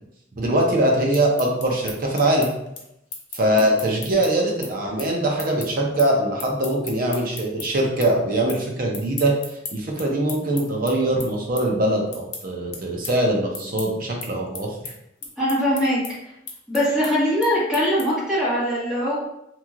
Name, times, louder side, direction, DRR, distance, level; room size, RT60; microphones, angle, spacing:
voice 1, 0.3-2.6 3.3-9.3 9.7-14.7, right 1 dB, 50° right, 0 dB, 0.6 m, -22 dB
sound 1, 0.9-7.7 8.0-8.6 8.9-18.3, left 5 dB, 65° left, 0.6 m, -37 dB
voice 2, 15.4-16.0 16.7-19.2, equal, 5° right, -11 dB, 1.4 m, -21 dB
3.0 x 2.8 x 2.4 m, 0.83 s
head